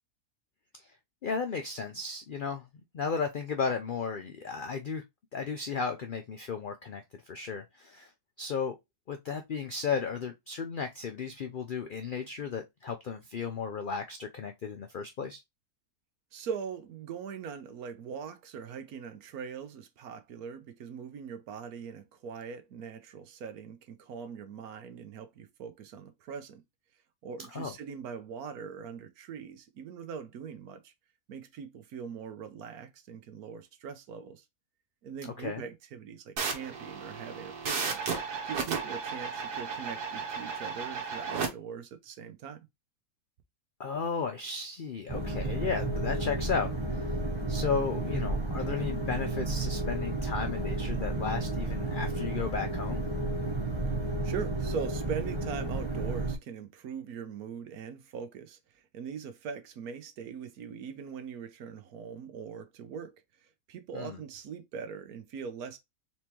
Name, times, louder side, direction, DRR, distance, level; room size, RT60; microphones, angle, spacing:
voice 1, 1.2-2.6 2.9-5.0 5.3-8.1 8.4-8.7 9.1-15.4 27.5-27.7 35.4-35.6 43.8-47.0 47.5-53.0 63.9-64.2, left 5 dB, 80° left, 0.4 m, -34 dB
voice 2, 16.3-26.6 27.2-30.9 31.3-34.4 35.0-38.0 38.5-42.7 54.2-63.1 63.7-65.8, right 6 dB, 75° right, 1.2 m, -41 dB
sound 1, 36.4-41.5, right 5 dB, 90° right, 1.7 m, -34 dB
sound 2, 45.1-56.3, right 2 dB, 25° right, 0.8 m, -32 dB
4.3 x 3.4 x 2.9 m
omnidirectional pair, 1.6 m